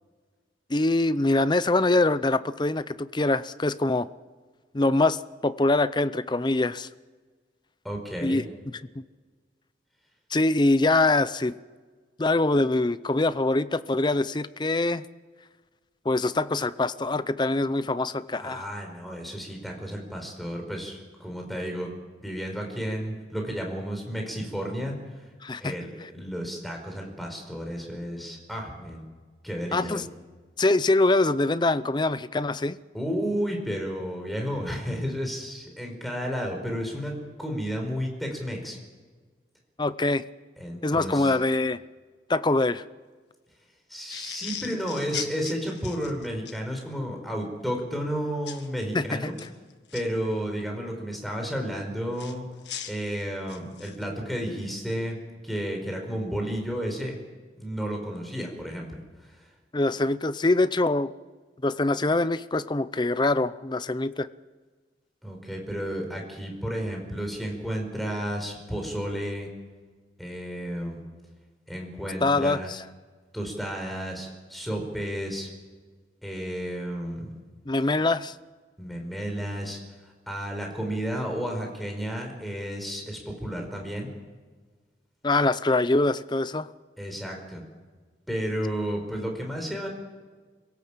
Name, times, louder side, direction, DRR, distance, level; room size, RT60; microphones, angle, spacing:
voice 1, 0.7-4.1 4.7-6.9 8.2-8.4 10.3-11.5 12.2-15.0 16.0-18.7 25.4-26.1 29.7-30.0 30.6-32.8 39.8-40.2 40.8-41.8 42.3-42.8 48.9-49.3 59.7-61.1 61.6-64.3 72.2-72.8 77.7-78.3 85.2-86.7, left 2 dB, 25° left, 14 dB, 0.6 m, -24 dB
voice 2, 7.8-8.4 18.3-21.9 22.2-25.0 25.6-29.0 29.4-30.0 32.9-38.8 40.6-41.3 43.9-49.3 49.9-52.4 52.9-55.2 55.4-57.1 57.6-59.0 65.2-69.5 70.2-71.0 71.7-72.7 73.3-75.5 76.2-77.3 78.8-79.8 80.3-84.1 87.0-87.6 88.3-89.9, equal, ahead, 1 dB, 4.8 m, -32 dB
sound 1, 44.1-46.6 48.5-48.7 49.2-50.0 52.2-54.0, left 9 dB, 75° left, 1.8 m, -38 dB
26.0 x 17.5 x 7.5 m, 1.4 s
head